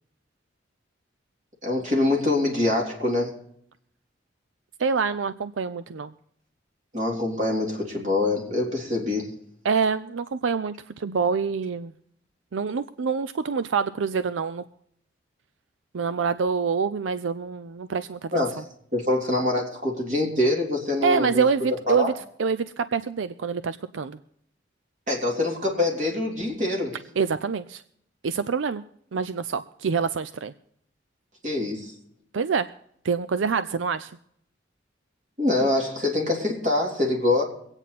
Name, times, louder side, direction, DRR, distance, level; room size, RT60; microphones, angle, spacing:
voice 1, 1.6-3.4 6.9-9.3 18.3-18.6 18.9-22.1 25.1-27.0 31.4-31.9 35.4-37.4, left 2 dB, 40° right, -1 dB, 3.5 m, -25 dB
voice 2, 4.8-6.1 9.6-11.9 12.5-14.6 15.9-18.4 21.0-22.1 22.4-24.2 27.2-27.8 28.2-28.8 29.1-30.5 32.3-32.7 33.0-34.1, right 5 dB, 85° right, 13 dB, 0.5 m, -26 dB
24.0 x 8.9 x 4.1 m, 0.70 s
head